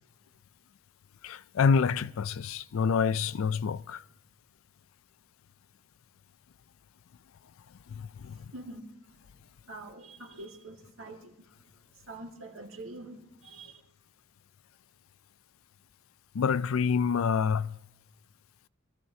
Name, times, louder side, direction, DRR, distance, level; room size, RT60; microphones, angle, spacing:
voice 1, 1.2-4.0 7.9-8.4 16.3-17.8, left 6 dB, 85° left, 0.4 m, -27 dB
voice 2, 8.5-8.9 9.1-9.4 9.7-11.5 11.9-13.8, right 2 dB, 80° right, 1.9 m, -45 dB
25.5 x 14.0 x 2.8 m
head